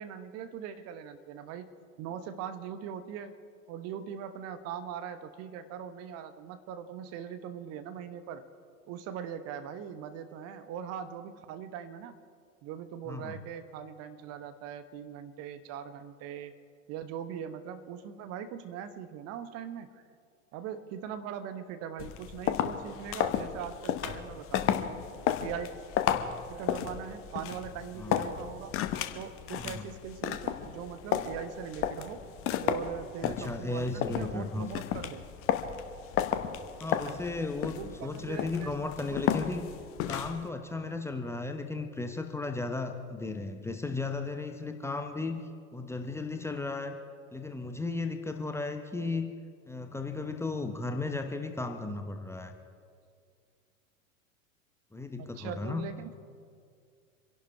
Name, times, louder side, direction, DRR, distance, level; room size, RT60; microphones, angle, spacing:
voice 1, 0.0-1.7 2.0-3.3 3.7-8.5 8.9-12.2 12.6-16.6 16.9-20.0 20.5-24.9 25.4-25.7 26.5-28.7 29.1-32.2 32.6-35.3 36.9-37.2 37.7-39.2 55.2-56.2, right 8 dB, 35° right, 11 dB, 1.0 m, -41 dB
voice 2, 13.1-13.4 28.0-28.2 29.6-29.8 33.2-34.7 36.8-39.7 40.1-45.4 45.7-47.0 47.3-49.3 49.7-52.5 54.9-55.8, left 3 dB, 5° left, 5 dB, 0.9 m, -35 dB
sound 1, 22.0-40.5, left 10 dB, 30° left, 1.0 m, -33 dB
26.5 x 11.5 x 4.6 m, 2.2 s
figure-of-eight pair, 85°, 42 cm